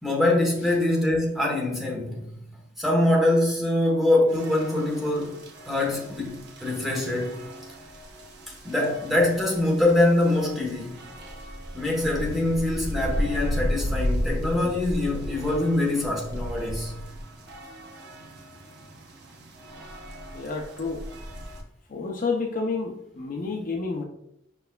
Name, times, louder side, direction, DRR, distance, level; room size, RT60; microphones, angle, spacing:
voice 1, 0.0-2.3 2.8-7.4 8.5-11.0 11.7-16.9, left 1 dB, ahead, 1.0 m, -24 dB
sound 1, 4.3-21.6, equal, 55° right, 0.8 m, -35 dB
voice 2, 20.3-21.1 21.9-24.0, left 4 dB, 40° left, 0.5 m, -30 dB
5.2 x 4.4 x 2.2 m
head